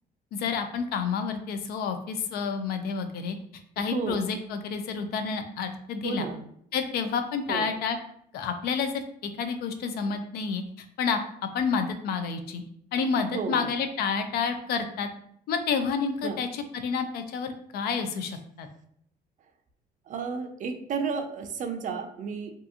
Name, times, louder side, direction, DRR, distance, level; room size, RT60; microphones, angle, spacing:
voice 1, 0.3-3.4 3.8-6.3 6.7-8.0 8.3-9.0 9.4-10.6 11.0-11.2 11.5-12.6 12.9-15.1 15.5-18.7, left 5 dB, 70° left, 7 dB, 0.4 m, -29 dB
voice 2, 3.9-4.3 6.0-6.4 7.5-7.7 13.3-13.7 16.2-16.4 20.1-22.5, right 5 dB, 50° right, 6 dB, 0.4 m, -32 dB
2.7 x 2.4 x 2.4 m, 0.69 s
cardioid pair, 110°, 17 cm